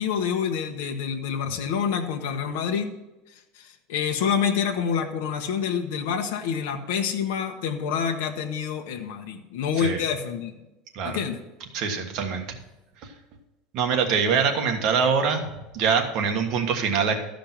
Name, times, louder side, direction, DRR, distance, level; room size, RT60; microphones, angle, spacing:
voice 1, 0.0-2.9 3.6-10.5 11.0-11.4, left 7 dB, 75° left, 4 dB, 1.1 m, -27 dB
voice 2, 11.7-12.5 13.7-17.2, right 6 dB, 40° right, 3 dB, 1.4 m, -24 dB
13.5 x 5.2 x 5.9 m, 1.0 s
cardioid pair, 170°, 0 cm